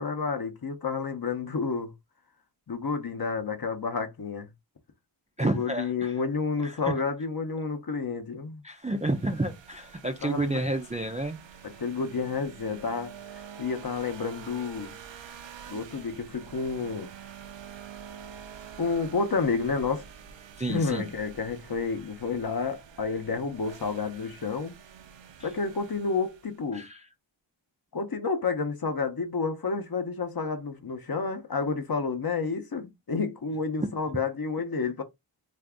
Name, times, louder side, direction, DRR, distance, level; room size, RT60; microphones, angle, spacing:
voice 1, 0.0-1.9 2.7-4.5 5.4-8.6 10.2-10.6 11.8-14.9 15.7-17.1 18.8-20.0 20.7-24.8 25.4-26.9 27.9-35.0, left 4 dB, 45° left, 0.7 m, -30 dB
voice 2, 5.4-6.2 6.6-7.0 8.6-11.4 20.6-21.1 25.4-25.5 26.7-27.1, right 2 dB, 15° right, 0.4 m, -30 dB
sound 1, 8.8-26.7, right 8 dB, 65° right, 0.5 m, -47 dB
2.6 x 2.4 x 3.4 m
wide cardioid pair, 65°, 49 cm